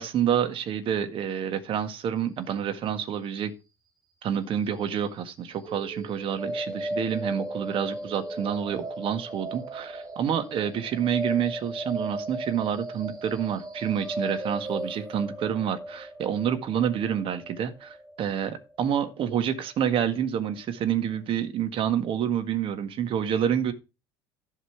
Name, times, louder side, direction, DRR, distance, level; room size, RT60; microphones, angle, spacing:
voice 1, 0.0-3.5 4.2-23.7, right 9 dB, 50° right, 1.8 m, -28 dB
sound 1, 5.6-19.6, right 1 dB, 35° right, 3.1 m, -36 dB
11.5 x 5.7 x 5.9 m
hypercardioid pair, 75°, 11 cm